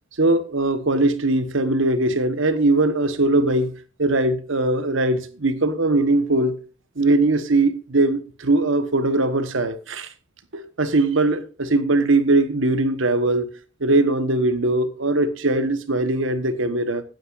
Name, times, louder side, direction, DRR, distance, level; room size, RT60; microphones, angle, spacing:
voice 1, 0.2-3.7 4.0-6.6 7.0-10.1 10.5-13.5 13.8-17.0, right 2 dB, 70° right, 1.2 m, -20 dB
16.0 x 9.1 x 2.5 m
head